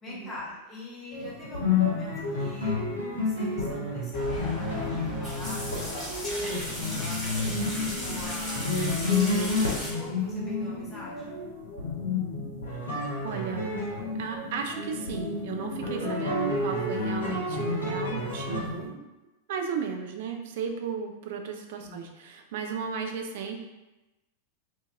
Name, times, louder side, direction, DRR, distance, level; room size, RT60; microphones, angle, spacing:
voice 1, 0.0-2.8 3.3-5.6 6.4-8.8 9.2-11.4 21.8-22.1, left 2 dB, 25° left, -5 dB, 0.9 m, -44 dB
sound 1, 1.1-18.9, left 3 dB, 70° left, 0.7 m, -30 dB
sound 2, 4.1-9.9, equal, 5° left, 1.4 m, -36 dB
voice 2, 13.2-13.7 14.2-19.0 19.5-23.6, right 6 dB, 55° right, 4 dB, 0.3 m, -35 dB
2.5 x 2.4 x 2.4 m, 1.0 s
figure-of-eight pair, 90°, 0 cm